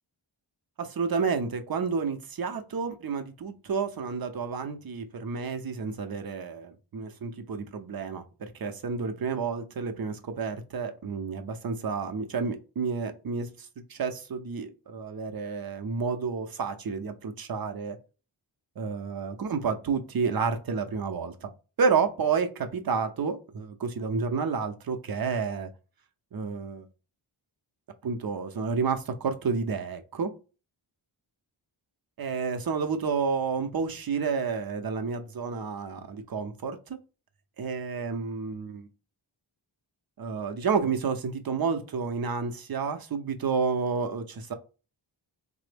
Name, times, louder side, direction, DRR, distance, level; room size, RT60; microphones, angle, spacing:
voice 1, 0.8-18.0 18.8-21.5 21.8-25.7 26.3-26.9 28.0-30.3 32.2-37.0 37.6-38.9 40.2-44.5, right 5 dB, 50° right, 0.6 m, -30 dB
3.3 x 2.0 x 3.3 m
cardioid pair, 50°, 48 cm